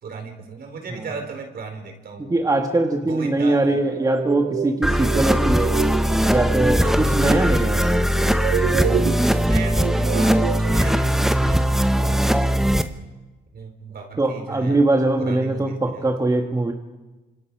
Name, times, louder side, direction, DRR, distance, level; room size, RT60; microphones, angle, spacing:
voice 1, 0.0-2.4 3.0-3.8 6.7-7.0 9.2-12.4 13.5-14.8 15.2-16.1, right 5 dB, 60° right, 4 dB, 4.6 m, -36 dB
voice 2, 2.3-5.8 6.3-8.4 14.2-16.7, right 2 dB, 20° right, 3 dB, 1.9 m, -22 dB
sound 1, 3.7-11.1, right 10 dB, 90° right, 1.1 m, -29 dB
sound 2, 4.8-12.8, equal, ahead, 1.2 m, -20 dB
29.0 x 26.5 x 4.9 m, 1.2 s
cardioid pair, 85°, 18 cm